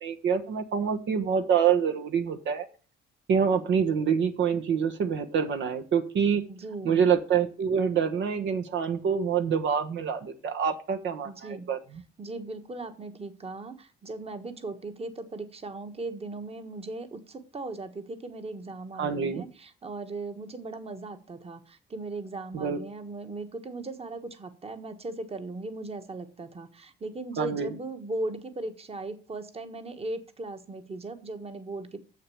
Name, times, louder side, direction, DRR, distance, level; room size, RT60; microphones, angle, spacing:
voice 1, 0.0-2.7 3.3-6.4 6.8-12.0 19.0-19.4 22.5-22.8 27.4-27.7, right 7 dB, 70° right, 6 dB, 1.2 m, -26 dB
voice 2, 6.5-7.0 11.2-11.7 12.2-32.0, right 2 dB, 30° right, 8 dB, 1.4 m, -38 dB
7.4 x 6.7 x 7.0 m, 0.38 s
cardioid pair, 90°, 20 cm